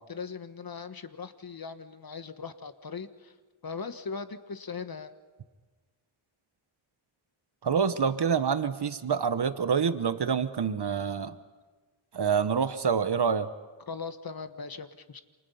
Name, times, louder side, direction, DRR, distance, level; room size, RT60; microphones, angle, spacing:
voice 1, 0.1-3.3 3.6-5.1 13.9-15.2, left 5 dB, 45° left, 11 dB, 1.3 m, -39 dB
voice 2, 7.6-11.4 12.1-13.5, right 6 dB, 50° right, 12 dB, 1.1 m, -27 dB
28.5 x 27.5 x 5.6 m, 1.3 s
wide cardioid pair, 120°, 50 cm